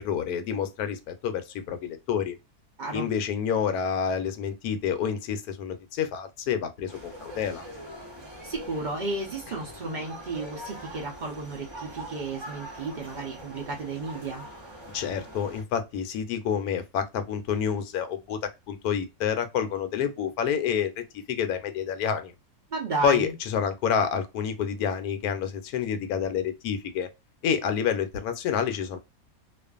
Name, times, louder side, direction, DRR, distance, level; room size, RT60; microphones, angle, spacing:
voice 1, 0.0-2.3 2.9-7.7 14.9-18.4 18.7-22.3 23.0-27.1 27.4-29.0, left 7 dB, 75° left, 1.0 m, -28 dB
voice 2, 2.8-3.1 8.4-14.5 22.7-23.3, right 3 dB, 90° right, 0.4 m, -33 dB
sound 1, 6.9-15.6, right 1 dB, 25° right, 0.6 m, -43 dB
2.5 x 2.4 x 2.3 m
omnidirectional pair, 1.7 m